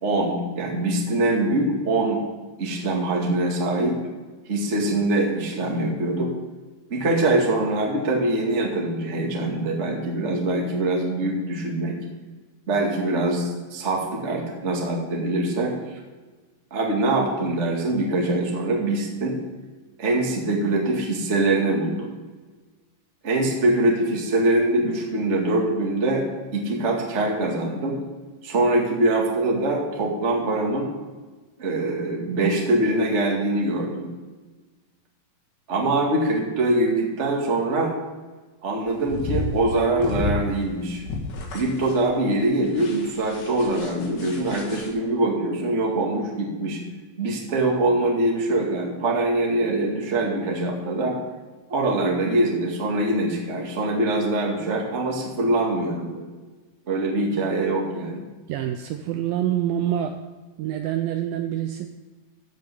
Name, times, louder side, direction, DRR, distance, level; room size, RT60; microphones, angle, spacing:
voice 1, 0.0-2.2 2.6-4.0 4.4-6.3 6.9-12.0 12.7-15.7 16.7-19.3 20.0-22.1 23.2-26.3 26.5-28.0 28.4-30.9 31.6-34.1 35.7-37.9 38.6-41.0 41.5-46.8 47.2-51.2 51.7-56.2 56.9-58.2, right 2 dB, 35° right, -1 dB, 1.2 m, -23 dB
sound 1, 38.9-44.9, left 3 dB, 80° left, 3.9 m, -32 dB
voice 2, 58.5-60.2 60.6-61.9, right 11 dB, 85° right, 7 dB, 2.1 m, -26 dB
15.0 x 5.3 x 6.7 m, 1.3 s
omnidirectional pair, 4.7 m